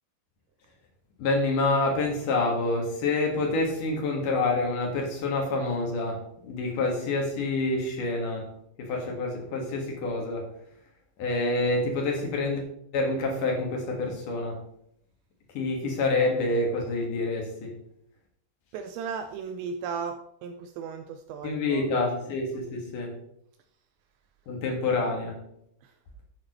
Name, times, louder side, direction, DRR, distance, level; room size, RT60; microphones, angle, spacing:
voice 1, 1.2-10.5 11.2-12.6 12.9-14.7 15.5-17.8 21.4-23.2 24.5-25.5, left 2 dB, 55° left, 2.7 m, -27 dB
voice 2, 18.7-20.2 20.4-21.8, right 6 dB, 85° right, 2.7 m, -35 dB
11.5 x 7.4 x 3.2 m
omnidirectional pair, 5.6 m